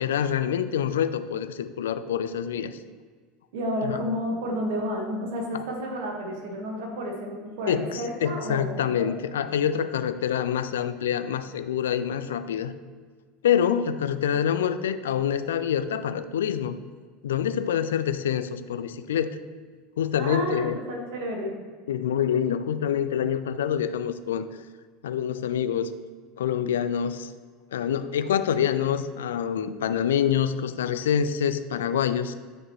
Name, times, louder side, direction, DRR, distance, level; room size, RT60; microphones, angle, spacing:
voice 1, 0.0-2.8 3.8-4.0 5.5-5.6 7.7-12.8 13.4-16.8 17.2-19.4 20.0-20.8 21.9-24.5 25.0-25.9 26.4-27.3 27.7-32.3, left 9 dB, 70° left, 11 dB, 0.3 m, -26 dB
voice 2, 3.5-9.5 20.1-21.5 29.6-29.9, equal, 60° right, 0 dB, 1.5 m, -31 dB
8.3 x 4.9 x 3.1 m, 1.5 s
figure-of-eight pair, 75°, 0 cm